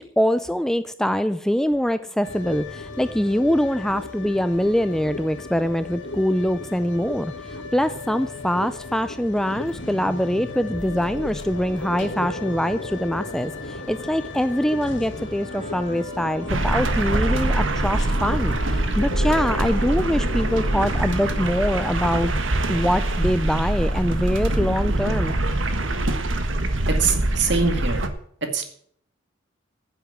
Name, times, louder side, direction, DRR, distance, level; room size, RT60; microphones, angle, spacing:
voice 1, 0.2-22.3 22.7-25.4, equal, 5° left, 12 dB, 0.4 m, -24 dB
sound 1, 2.2-21.7, left 2 dB, 65° left, 1.8 m, -35 dB
Wind instrument woodwind instrument, 15.0-22.3, right 1 dB, 30° right, 2.6 m, -45 dB
sound 2, 16.5-28.1, right 1 dB, 75° right, 1.5 m, -23 dB
voice 2, 26.9-28.1 28.4-28.7, right 5 dB, 60° right, 5 dB, 2.3 m, -23 dB
10.0 x 7.9 x 8.8 m, 0.63 s
head